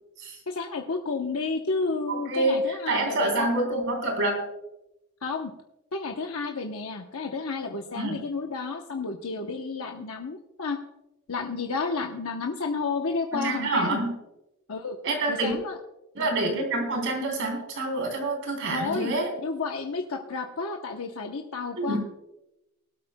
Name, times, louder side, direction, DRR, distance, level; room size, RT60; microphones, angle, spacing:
voice 1, 0.5-3.5 5.2-5.5 5.9-10.8 11.3-14.0 14.7-15.0 15.3-15.8 16.5-16.6 18.7-19.1 19.4-22.0, left 4 dB, 80° left, 3 dB, 0.9 m, -31 dB
voice 2, 2.1-4.5 8.0-8.2 13.3-14.1 15.0-15.5 16.2-19.3 21.8-22.0, right 2 dB, 65° right, 2 dB, 3.5 m, -27 dB
19.5 x 12.5 x 2.2 m, 0.92 s
head